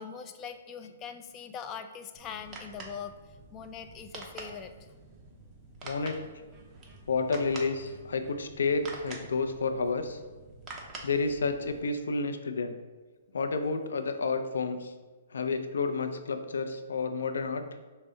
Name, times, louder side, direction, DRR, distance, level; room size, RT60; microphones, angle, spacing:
voice 1, 0.0-4.9, left 7 dB, 25° left, 7 dB, 0.3 m, -42 dB
sound 1, 2.2-11.8, right 3 dB, 20° right, 0.7 m, -47 dB
voice 2, 5.8-6.2 7.1-10.2 11.0-12.8 13.3-14.9 15.3-17.6, left 4 dB, 85° left, 7 dB, 0.4 m, -30 dB
5.7 x 2.0 x 3.9 m, 1.3 s
hypercardioid pair, 150°, 0 cm